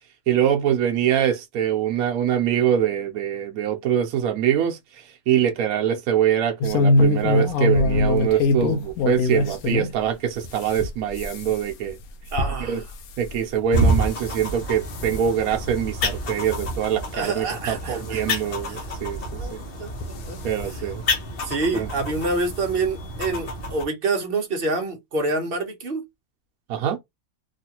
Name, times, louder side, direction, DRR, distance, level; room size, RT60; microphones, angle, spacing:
voice 1, 0.3-12.0 12.7-12.8 13.2-19.6 20.4-21.0 21.7-21.9 26.7-27.0, right 9 dB, 85° right, 1.1 m, -24 dB
sound 1, 6.6-9.9 10.4-14.5 14.9-15.3 15.8-16.1 16.4-16.7 17.3-17.4 17.8-17.9 19.0-19.1 19.9-20.7 21.8-22.0 22.4-22.5 22.8-22.9, left 2 dB, 75° left, 1.0 m, -23 dB
voice 2, 12.3-12.8 17.1-18.8 19.4-20.4 20.7-20.9 21.4-26.0, right 3 dB, 45° right, 0.9 m, -27 dB
sound 2, 13.7-23.9, equal, 50° left, 0.9 m, -29 dB
3.1 x 2.4 x 2.8 m
omnidirectional pair, 1.5 m